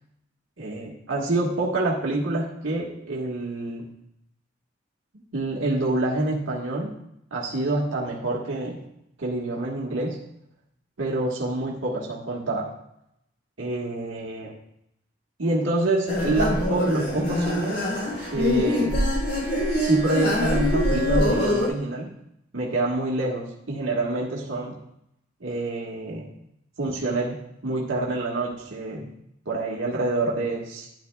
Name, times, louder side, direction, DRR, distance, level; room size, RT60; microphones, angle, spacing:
voice 1, 0.6-3.9 5.3-7.0 7.3-8.8 9.2-10.2 11.0-12.7 13.6-14.5 15.4-17.9 18.3-19.0 19.8-22.1 22.5-24.8 25.4-26.3 26.8-29.1 29.4-30.9, right 2 dB, 90° right, -3 dB, 1.5 m, -27 dB
sound 1, 16.1-21.7, left 1 dB, 55° left, 3.3 m, -24 dB
12.5 x 10.0 x 2.2 m, 0.77 s
head